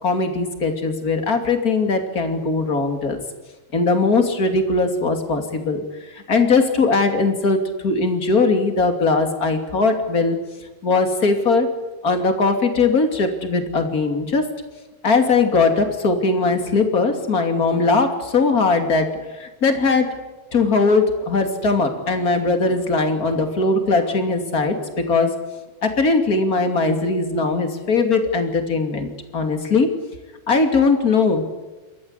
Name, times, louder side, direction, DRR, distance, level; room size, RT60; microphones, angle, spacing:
voice 1, 0.0-3.2 3.7-5.8 6.1-10.4 10.8-11.7 12.0-14.5 15.0-20.1 20.5-25.4 25.8-29.9 30.5-31.4, left 3 dB, 25° left, 6 dB, 2.6 m, -20 dB
28.5 x 14.0 x 9.7 m, 1.2 s
omnidirectional pair, 4.4 m